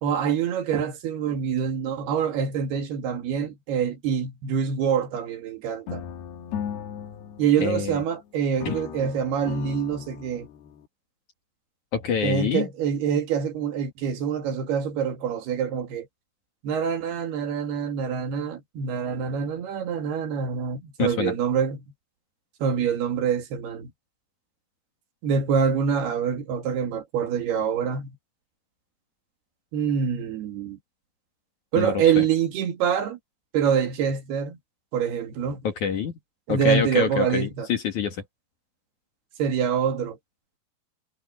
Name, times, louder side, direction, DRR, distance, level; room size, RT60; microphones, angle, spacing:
voice 1, 0.0-6.0 7.4-10.5 12.2-16.1 16.6-21.8 22.6-23.9 25.2-28.2 29.7-30.8 31.7-33.2 33.5-34.6 34.9-35.7 36.5-37.7 39.4-40.2, right 7 dB, 65° right, 3.9 m, -25 dB
sound 1, 5.9-8.2 8.6-10.9, left 8 dB, 70° left, 3.4 m, -37 dB
voice 2, 7.6-8.0 8.6-8.7 11.9-12.7 21.0-21.3 31.7-32.2 35.6-36.1 36.5-38.2, left 7 dB, 55° left, 2.7 m, -26 dB
omnidirectional pair, 5.0 m